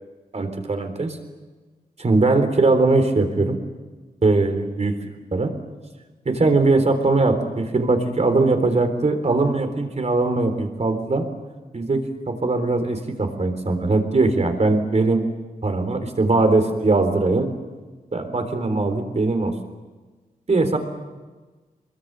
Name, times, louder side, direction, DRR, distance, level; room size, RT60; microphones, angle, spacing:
voice 1, 0.3-1.2 2.0-3.6 4.2-5.5 6.3-11.3 11.7-15.3 15.6-17.5 18.1-19.5 20.5-20.8, right 3 dB, 45° right, 7 dB, 3.8 m, -20 dB
25.5 x 22.0 x 9.0 m, 1.3 s
wide cardioid pair, 125°, 16 cm